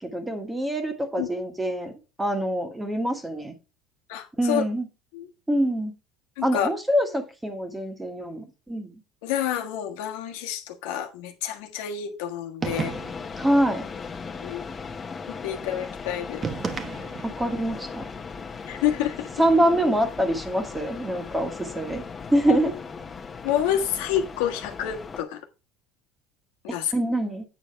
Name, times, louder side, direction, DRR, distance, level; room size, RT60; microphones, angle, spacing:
voice 1, 0.0-1.9 2.2-3.5 4.4-4.9 5.5-5.9 6.4-8.9 13.4-13.8 17.2-18.1 19.4-22.0 22.3-22.7 26.9-27.4, right 1 dB, 10° right, 1.5 m, -25 dB
voice 2, 4.1-4.6 5.1-5.3 6.4-6.7 9.2-12.9 14.4-14.6 15.3-16.5 18.7-19.3 22.5-22.6 23.4-25.4 26.6-26.9, left 10 dB, 85° left, 1.3 m, -28 dB
sound 1, 12.6-25.2, left 5 dB, 25° left, 1.2 m, -38 dB
sound 2, 12.6-13.4 16.4-17.4, right 5 dB, 30° right, 1.1 m, -32 dB
8.7 x 4.6 x 4.5 m
supercardioid pair, 115°, 0 cm